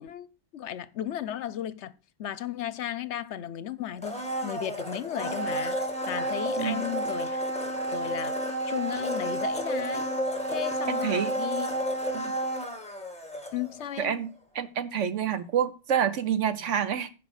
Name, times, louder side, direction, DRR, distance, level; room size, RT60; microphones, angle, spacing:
voice 1, 0.0-5.8 6.1-7.4 7.9-8.4 8.7-10.1 10.5-11.7 13.5-14.2, left 11 dB, 75° left, 1.0 m, -35 dB
Domestic sounds home sounds, 4.0-13.9 14.2-14.3, right 1 dB, 5° left, 1.8 m, -31 dB
voice 2, 10.9-11.3 12.1-12.4 14.0-17.1, right 8 dB, 85° right, 1.3 m, -28 dB
10.0 x 5.3 x 6.4 m
omnidirectional pair, 1.2 m